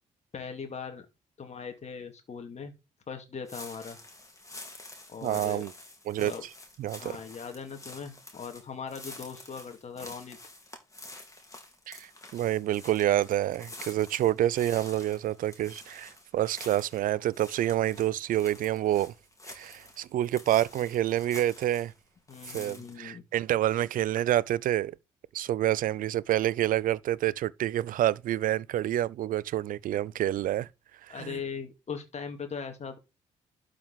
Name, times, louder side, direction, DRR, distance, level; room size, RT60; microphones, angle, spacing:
voice 1, 0.3-1.1 1.4-2.7 3.1-4.0 5.1-5.6 6.2-6.4 7.0-10.4 22.3-23.2 31.1-33.0, left 6 dB, 40° left, 2.3 m, -39 dB
sound 1, 3.5-22.0 22.3-22.9, left 2 dB, 20° left, 3.7 m, -48 dB
voice 2, 5.2-5.7 6.1-6.3 6.8-7.2 11.9-19.1 19.5-21.9 22.5-25.0 25.3-30.7 31.1-31.4, right 13 dB, 55° right, 0.5 m, -28 dB
12.0 x 5.1 x 4.9 m
figure-of-eight pair, 40°, 17 cm